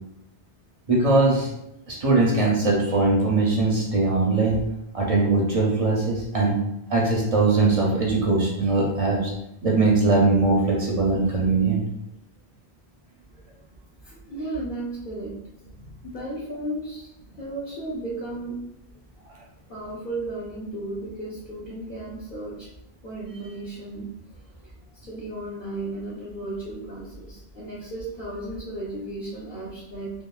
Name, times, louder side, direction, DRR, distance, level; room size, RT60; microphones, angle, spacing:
voice 1, 0.9-1.5 1.9-4.6 4.9-6.5 6.9-9.3 9.6-11.8, right 3 dB, 45° right, -2 dB, 0.5 m, -21 dB
voice 2, 14.0-15.3 16.0-17.1 17.4-18.6 19.7-22.7 23.0-24.1 24.5-30.1, right 2 dB, 55° left, -8 dB, 0.8 m, -34 dB
2.9 x 2.3 x 2.2 m, 0.82 s
omnidirectional pair, 1.0 m